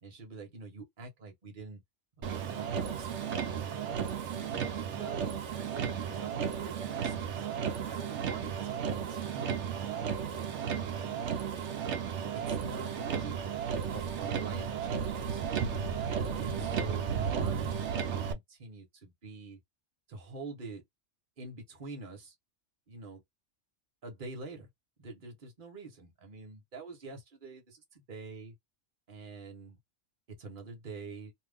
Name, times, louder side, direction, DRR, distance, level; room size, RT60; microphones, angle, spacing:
voice 1, 0.0-1.8 2.2-4.0 4.3-5.2 5.6-7.5 7.9-11.3 12.3-13.4 13.9-15.9 16.3-19.6 20.1-20.8 21.4-22.3 22.9-23.2 24.0-24.7 25.0-28.5 29.1-29.8 30.4-31.3, right 3 dB, 45° right, 1.3 m, -46 dB
Motor vehicle (road), 2.2-18.3, right 7 dB, 70° right, 1.0 m, -34 dB
2.7 x 2.5 x 3.5 m
omnidirectional pair, 1.3 m